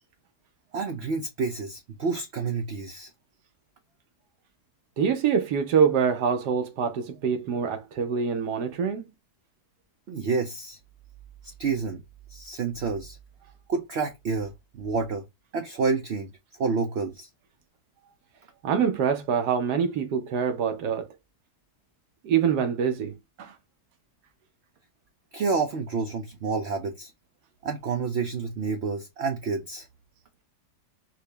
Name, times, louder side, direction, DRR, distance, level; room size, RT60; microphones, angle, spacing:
voice 1, 0.7-3.1 10.1-10.8 11.6-12.0 12.3-13.2 13.7-15.2 15.5-16.3 16.6-17.3 25.3-27.1 27.6-29.9, right 4 dB, 65° right, 0.6 m, -29 dB
voice 2, 5.0-9.1 18.6-21.1 22.2-23.5, right 7 dB, 80° right, 1.3 m, -25 dB
4.8 x 2.1 x 3.2 m
omnidirectional pair, 1.7 m